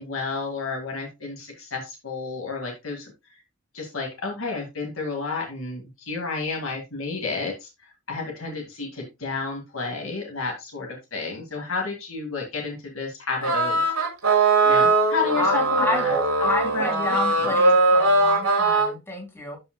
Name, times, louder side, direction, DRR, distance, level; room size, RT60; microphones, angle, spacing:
voice 1, 0.0-3.1 3.7-13.8 14.6-16.1 16.4-16.5 16.7-17.6, left 4 dB, 65° left, 2.0 m, -31 dB
sound 1, 13.4-18.9, right 2 dB, 80° right, 3.2 m, -20 dB
voice 2, 15.4-16.0 16.4-19.6, left 2 dB, 10° left, 2.3 m, -28 dB
12.0 x 5.1 x 2.2 m
head